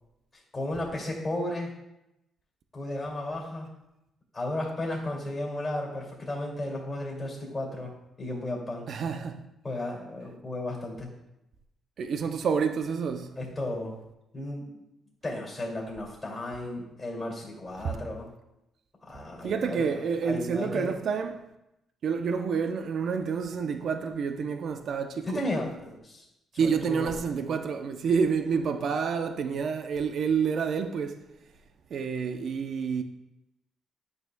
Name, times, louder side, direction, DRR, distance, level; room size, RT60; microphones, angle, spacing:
voice 1, 0.5-1.7 2.7-3.7 4.3-7.9 8.2-9.0 9.6-11.1 13.4-13.9 14.3-14.8 15.2-18.3 19.1-21.0 25.3-26.2 26.5-27.1, left 1 dB, 20° left, 2.3 m, -34 dB
voice 2, 8.9-9.4 12.0-13.3 17.8-17.9 19.4-21.3 22.0-25.4 26.6-31.2 31.9-33.0, right 6 dB, 60° right, 0.5 m, -28 dB
9.3 x 5.6 x 2.2 m
cardioid pair, 90°, 0 cm